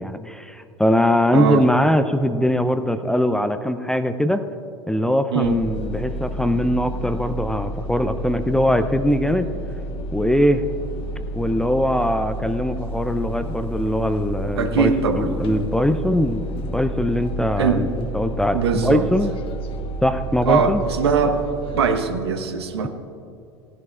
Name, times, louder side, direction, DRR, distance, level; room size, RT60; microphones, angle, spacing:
voice 1, 0.0-4.4 4.9-9.5 10.1-10.7 11.4-14.9 15.2-19.3 20.0-20.8, left 1 dB, 5° left, 10 dB, 0.5 m, -21 dB
voice 2, 1.3-1.6 5.3-5.6 14.6-15.3 17.6-17.8 18.5-19.1 20.5-21.4 21.7-22.9, right 6 dB, 70° right, 7 dB, 1.0 m, -21 dB
sound 1, 5.4-22.0, right 1 dB, 40° left, 1.1 m, -31 dB
17.0 x 11.0 x 2.4 m, 2.6 s
figure-of-eight pair, 75°, 14 cm